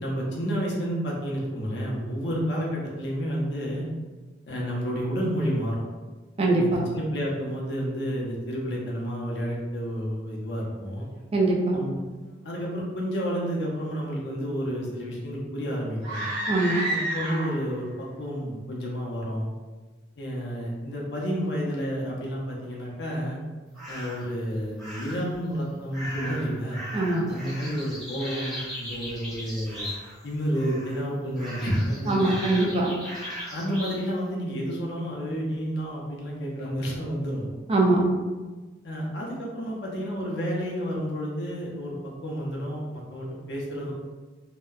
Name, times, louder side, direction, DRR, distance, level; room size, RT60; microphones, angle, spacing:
voice 1, 0.0-3.9 4.5-5.8 6.5-11.0 11.7-12.0 12.4-16.2 16.9-19.5 20.2-23.4 23.9-26.8 27.3-29.9 30.2-32.3 33.5-37.4 38.8-43.9, equal, 65° left, -3 dB, 0.6 m, -30 dB
voice 2, 6.4-6.9 11.3-11.8 16.5-16.8 26.9-27.3 32.1-32.9 37.7-38.0, right 2 dB, 30° right, -2 dB, 0.3 m, -22 dB
sound 1, 16.0-17.8, right 1 dB, 90° right, 1.1 m, -30 dB
sound 2, 23.7-24.3 24.8-25.4 25.9-30.3 30.5-31.0 31.4-34.0, equal, ahead, 0.7 m, -38 dB
2.7 x 2.1 x 2.3 m, 1.3 s
head